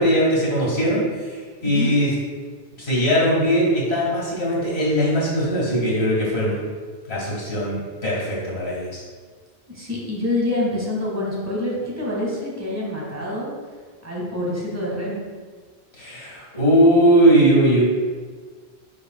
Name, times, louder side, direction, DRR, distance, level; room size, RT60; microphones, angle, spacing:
voice 1, 0.0-2.1 2.8-6.6 7.1-7.8 8.0-9.0 16.0-17.8, equal, 80° left, -5 dB, 2.2 m, -19 dB
voice 2, 9.7-13.5 14.0-15.2, left 1 dB, 15° right, -5 dB, 1.8 m, -26 dB
9.8 x 4.9 x 2.4 m, 1.5 s
omnidirectional pair, 1.1 m